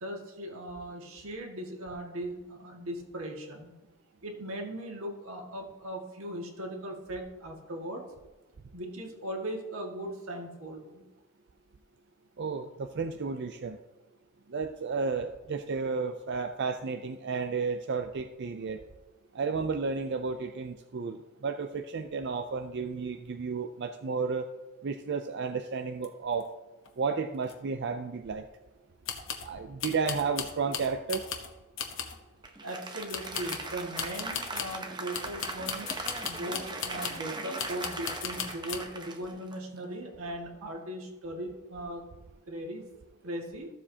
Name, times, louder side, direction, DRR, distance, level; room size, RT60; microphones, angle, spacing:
voice 1, 0.0-3.7 4.2-8.0 8.7-11.1 32.6-36.0 36.3-42.0 42.5-42.8 43.2-43.7, right 1 dB, 85° right, 0 dB, 1.9 m, -38 dB
voice 2, 12.4-13.8 14.5-18.8 19.3-24.5 24.8-26.5 27.0-28.4 29.5-31.3, right 5 dB, 55° right, 6 dB, 0.4 m, -32 dB
sound 1, 26.0-26.1 26.3-26.4 26.9-27.0 27.5-27.6 29.1-29.5 29.8-31.5 31.8-32.2 33.1-34.8 35.1-37.3 37.6-38.8, left 7 dB, 65° left, 1.1 m, -37 dB
Applause, 32.4-40.1, right 2 dB, 20° right, 0.8 m, -40 dB
14.5 x 7.3 x 2.8 m, 1.1 s
head